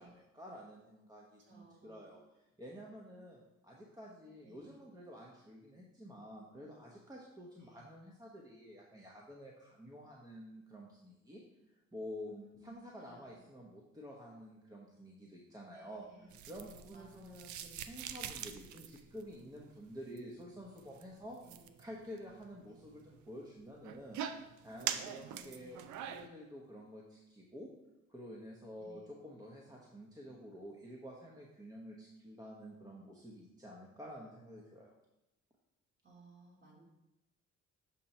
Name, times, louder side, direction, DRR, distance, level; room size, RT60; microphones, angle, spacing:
voice 1, 0.0-2.2 2.6-11.4 11.9-12.3 12.6-16.1 16.5-21.4 21.8-24.2 24.6-27.7 28.1-34.9, equal, 10° right, -2 dB, 0.9 m, -50 dB
voice 2, 1.4-2.0 4.4-4.8 7.6-7.8 12.2-13.4 15.7-16.3 16.9-17.5 21.4-21.8 22.7-22.8 24.7-25.9 28.8-29.2 36.0-36.8, right 2 dB, 40° right, -3 dB, 2.3 m, -60 dB
sound 1, 16.3-26.3, right 9 dB, 75° right, 0.5 m, -45 dB
6.9 x 2.9 x 5.3 m, 0.93 s
cardioid pair, 90°, 30 cm